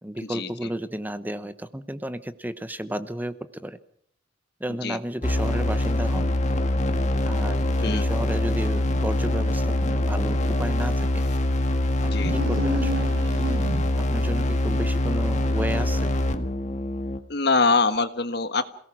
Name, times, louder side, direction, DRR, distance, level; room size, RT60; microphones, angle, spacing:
voice 1, 0.0-3.8 4.6-6.3 7.2-11.1 12.0-13.1 14.0-16.1, right 1 dB, 10° right, 12 dB, 0.9 m, -32 dB
sound 1, 5.2-17.2, left 1 dB, 40° left, 1.7 m, -24 dB
sound 2, 12.2-14.2, left 1 dB, 90° right, 4.7 m, -30 dB
voice 2, 17.3-18.6, left 4 dB, 60° left, 11 dB, 1.4 m, -23 dB
27.5 x 18.0 x 6.1 m, 0.62 s
head